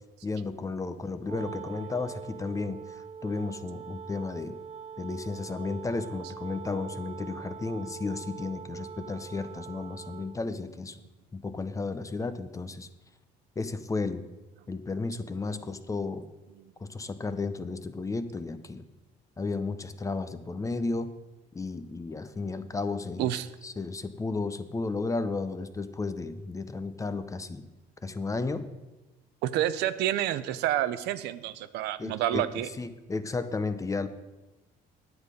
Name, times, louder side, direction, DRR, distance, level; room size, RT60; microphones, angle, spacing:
voice 1, 0.2-4.6 5.0-11.0 11.3-12.9 13.6-14.2 14.7-16.3 16.8-18.8 19.4-21.1 21.5-23.3 23.6-27.6 28.0-28.7 32.0-34.1, left 3 dB, 20° left, 12 dB, 0.6 m, -33 dB
Wind instrument woodwind instrument, 1.2-10.5, right 7 dB, 40° right, 0.6 m, -43 dB
voice 2, 29.4-32.7, right 12 dB, 85° right, 13 dB, 0.6 m, -29 dB
9.6 x 8.3 x 5.1 m, 1.1 s
cardioid pair, 110°, 17 cm